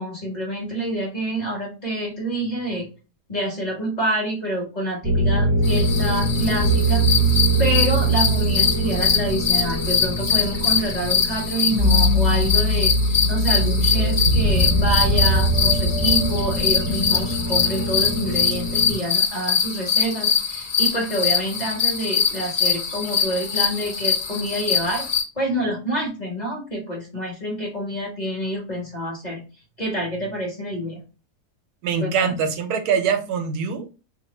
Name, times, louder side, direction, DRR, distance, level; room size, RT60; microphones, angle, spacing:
voice 1, 0.0-2.9 3.3-7.1 7.6-12.9 13.3-25.1 25.4-29.4 29.8-31.0 32.0-32.3, right 1 dB, 30° left, 1.2 m, -27 dB
sound 1, 5.0-18.9, right 1 dB, 25° right, 0.4 m, -22 dB
sound 2, 5.6-25.2, left 6 dB, 45° left, 0.7 m, -23 dB
sound 3, 13.9-18.6, right 3 dB, 85° left, 1.2 m, -29 dB
voice 2, 31.8-34.0, right 6 dB, 80° right, 1.2 m, -23 dB
2.9 x 2.5 x 4.0 m
omnidirectional pair, 1.7 m